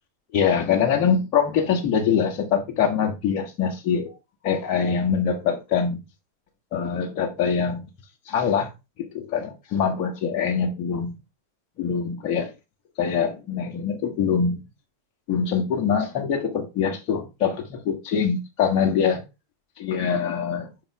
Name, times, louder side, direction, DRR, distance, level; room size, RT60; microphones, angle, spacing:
voice 1, 0.3-4.2 4.4-6.0 6.7-7.8 8.3-8.7 9.0-11.1 11.8-12.5 13.0-14.6 15.3-19.2 19.8-20.7, left 7 dB, 40° left, 1.4 m, -24 dB
5.9 x 4.7 x 3.9 m
figure-of-eight pair, 90°, 0 cm